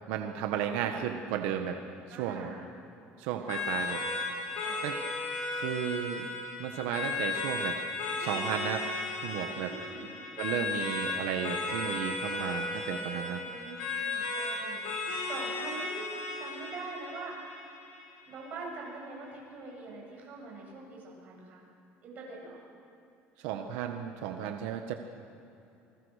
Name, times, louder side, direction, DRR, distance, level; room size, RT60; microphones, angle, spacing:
voice 1, 0.1-1.8 2.1-2.5 3.2-4.0 4.8-5.0 5.5-6.3 6.6-7.8 8.2-8.9 9.2-9.7 10.4-13.4 23.4-24.9, right 9 dB, 90° right, 5 dB, 1.4 m, -34 dB
voice 2, 2.1-2.7 3.4-3.7 4.5-4.8 9.6-10.1 13.4-16.1 16.4-17.4 18.3-21.6 22.0-22.6, right 3 dB, 35° right, -2 dB, 7.5 m, -44 dB
sound 1, 3.5-18.5, left 3 dB, 85° left, 7.1 m, -35 dB
28.5 x 21.5 x 6.6 m, 2.9 s
cardioid pair, 175°, 5 cm